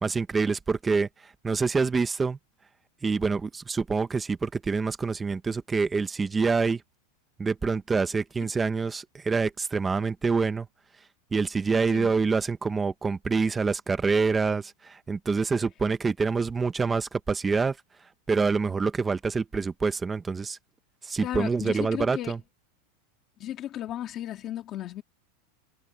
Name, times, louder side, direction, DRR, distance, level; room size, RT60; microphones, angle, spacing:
voice 1, 0.0-2.4 3.0-6.8 7.4-10.7 11.3-17.8 18.3-20.6 21.0-22.4, right 4 dB, 10° right, 0.9 m, -26 dB
voice 2, 21.2-22.3 23.4-25.0, left 12 dB, 25° left, 2.1 m, -35 dB
supercardioid pair, 175°, 0 cm